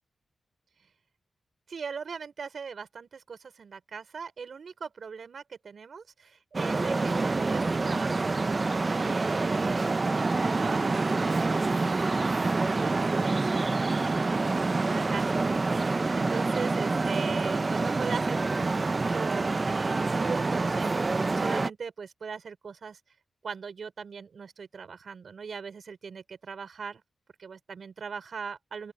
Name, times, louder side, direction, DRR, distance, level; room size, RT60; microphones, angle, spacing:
voice 1, 1.7-23.0 23.4-27.0 27.4-28.9, right 5 dB, 70° right, 5.4 m, -40 dB
Traffic noise roadway noise, 6.5-21.7, right 3 dB, 40° right, 0.8 m, -27 dB
open air
cardioid pair, 75°, 0 cm